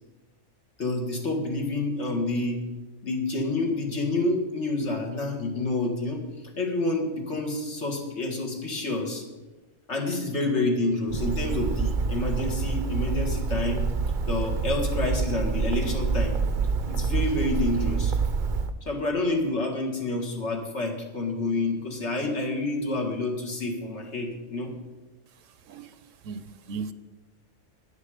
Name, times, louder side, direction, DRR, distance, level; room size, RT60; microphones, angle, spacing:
voice 1, 0.8-2.6 3.0-6.2 6.6-9.2 9.9-13.8 14.2-16.4 16.9-18.1 18.8-24.8, left 2 dB, 65° left, 2.3 m, -28 dB
Bird, 11.1-18.7, right 5 dB, 50° right, 0.7 m, -27 dB
voice 2, 25.4-26.9, right 5 dB, 80° right, 1.1 m, -38 dB
13.5 x 9.9 x 5.0 m
omnidirectional pair, 1.3 m